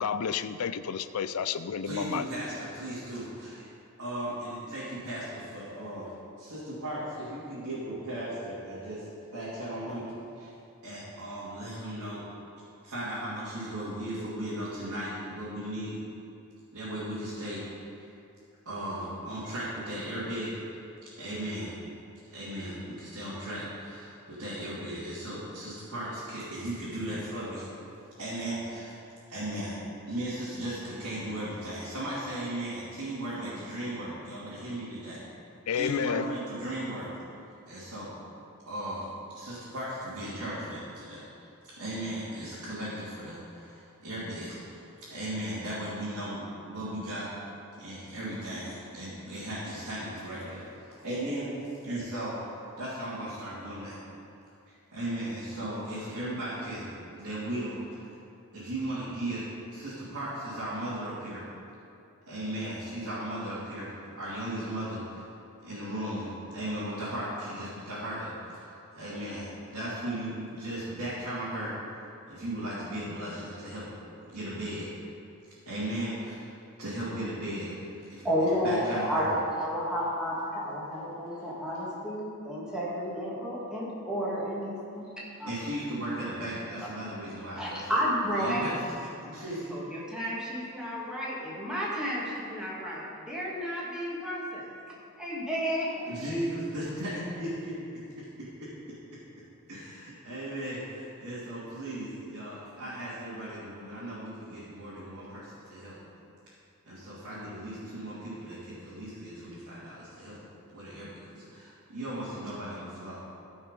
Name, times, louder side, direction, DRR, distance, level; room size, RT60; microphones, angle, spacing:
voice 1, 0.0-2.2 35.7-36.3, left 7 dB, 80° left, 13 dB, 0.4 m, -30 dB
voice 2, 1.8-3.7 4.0-6.1 6.4-10.1 10.4-10.5 10.8-12.2 12.8-16.0 16.7-17.6 18.0-18.1 18.6-20.5 21.2-21.7 22.3-27.7 28.2-29.0 29.3-29.8 30.1-35.2 35.7-37.1 37.7-38.1 38.7-41.2 41.6-44.8 45.1-47.3 47.8-54.0 54.9-56.9 57.2-58.0 58.5-61.4 62.3-65.2 65.6-71.7 72.3-73.9 74.3-74.9 75.7-76.5 76.8-79.3 85.5-87.9 88.3-88.7 89.2-89.7 96.0-98.7 99.7-106.0 106.9-110.4 110.7-113.2, right 1 dB, 75° right, -11 dB, 2.8 m, -36 dB
voice 3, 78.2-85.1 85.4-85.5 87.6-88.8 89.7-94.7 95.2-96.1, equal, 5° right, -7 dB, 2.1 m, -31 dB
14.5 x 5.6 x 5.3 m, 2.7 s
head